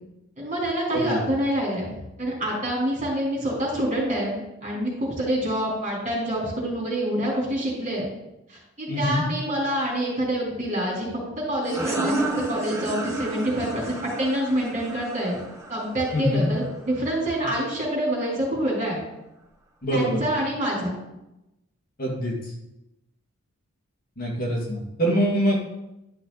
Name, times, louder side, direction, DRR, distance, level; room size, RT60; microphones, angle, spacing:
voice 1, 0.4-8.1 8.5-11.1 11.4-15.4 15.7-19.0 19.9-20.9, right 1 dB, 35° right, -4 dB, 3.8 m, -26 dB
voice 2, 8.9-9.2 16.1-16.5 19.8-20.2 22.0-22.3 24.2-25.6, equal, 45° left, -3 dB, 2.2 m, -24 dB
sound 1, 11.6-17.0, right 2 dB, 15° right, 1.0 m, -31 dB
11.5 x 5.8 x 4.1 m, 0.92 s
head